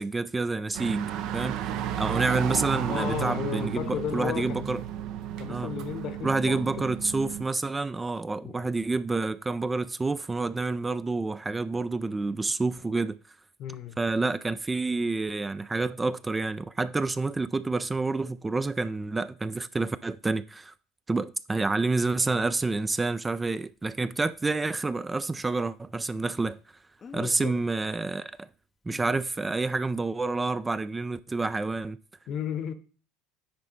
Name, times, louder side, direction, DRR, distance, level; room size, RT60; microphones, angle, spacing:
voice 1, 0.0-4.8 5.5-5.7 6.2-13.2 14.0-20.7 21.1-26.6 27.1-28.5 28.9-32.0, right 3 dB, 20° right, 0.3 m, -28 dB
sound 1, 0.7-7.4, right 10 dB, 60° right, 0.6 m, -33 dB
voice 2, 2.9-4.8 5.4-6.9 8.4-8.8 13.6-14.0 27.1-27.5 32.3-32.7, left 9 dB, 50° left, 1.0 m, -34 dB
Speech, 21.7-21.8 27.0-27.6 28.9-29.1, left 5 dB, 30° left, 0.5 m, -46 dB
9.6 x 4.1 x 4.0 m
hypercardioid pair, 70°, 0 cm